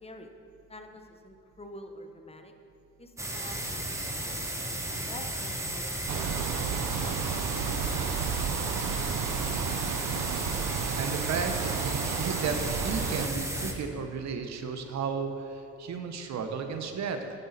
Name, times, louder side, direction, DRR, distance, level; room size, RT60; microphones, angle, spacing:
voice 1, 0.0-0.3 0.7-2.5 3.0-4.4 5.0-6.4 7.0-7.7 7.9-8.2 8.7-9.4 9.7-10.5, left 1 dB, 20° left, 5 dB, 0.8 m, -48 dB
sound 1, 3.2-13.7, right 1 dB, 10° right, 1.1 m, -34 dB
sound 2, 6.1-13.3, right 7 dB, 90° right, 0.6 m, -32 dB
voice 2, 10.9-17.4, right 5 dB, 65° right, 6 dB, 0.9 m, -34 dB
9.2 x 8.1 x 4.1 m, 2.8 s
cardioid pair, 90°, 30 cm